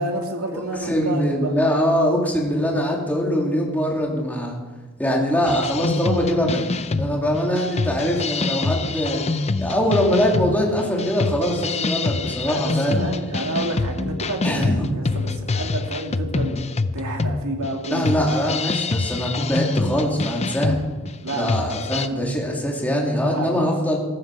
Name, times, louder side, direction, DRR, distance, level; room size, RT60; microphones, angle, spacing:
voice 1, 0.0-1.5 12.5-16.7 16.9-18.2 21.2-21.5 21.9-22.0 23.2-23.6, right 1 dB, 75° right, 1 dB, 2.7 m, -29 dB
voice 2, 0.5-4.6 5.0-6.7 7.0-9.2 9.6-13.1 14.4-14.8 17.9-20.9 21.3-24.0, equal, 10° left, -1 dB, 2.9 m, -22 dB
sound 1, 5.5-22.1, left 3 dB, 30° left, 0.5 m, -26 dB
16.0 x 14.0 x 4.9 m, 1.2 s
head